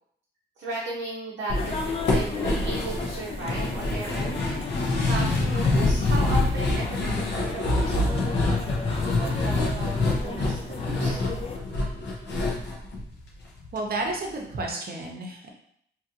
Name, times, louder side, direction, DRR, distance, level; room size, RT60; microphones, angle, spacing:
voice 1, 0.6-4.4 4.7-10.0 10.2-11.2, right 2 dB, 90° right, -6 dB, 0.6 m, -36 dB
sound 1, 1.5-13.8 14.1-14.2 14.5-14.6, left 2 dB, 70° left, 0.8 m, -26 dB
sound 2, 1.5-11.6, left 4 dB, 30° left, 0.4 m, -36 dB
voice 2, 13.7-15.5, right 2 dB, 55° right, 1 dB, 0.7 m, -31 dB
2.8 x 2.5 x 2.8 m, 0.68 s
cardioid pair, 70°, 19 cm